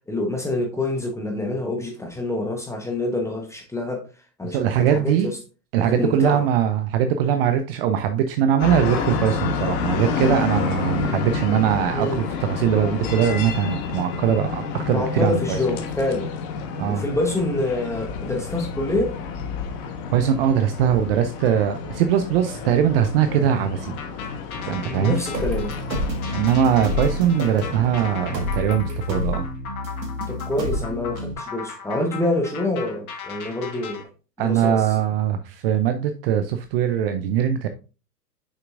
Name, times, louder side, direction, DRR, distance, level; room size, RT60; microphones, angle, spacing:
voice 1, 0.1-4.0 4.4-5.4 5.8-6.4 11.9-12.2 14.9-16.3 16.9-19.1 24.8-25.7 30.3-34.1 34.4-34.8, left 2 dB, 5° left, 2 dB, 1.0 m, -26 dB
voice 2, 4.4-5.3 5.7-15.6 16.8-17.0 20.1-24.0 24.7-25.2 26.3-29.4 34.4-37.7, right 9 dB, 35° right, 8 dB, 0.6 m, -21 dB
sound 1, 8.6-28.4, left 5 dB, 40° left, 1.2 m, -30 dB
sound 2, 24.0-34.0, left 6 dB, 60° left, 1.6 m, -37 dB
sound 3, 25.3-31.3, left 1 dB, 85° right, 1.8 m, -29 dB
6.7 x 5.8 x 2.5 m, 0.33 s
figure-of-eight pair, 105°, 50 cm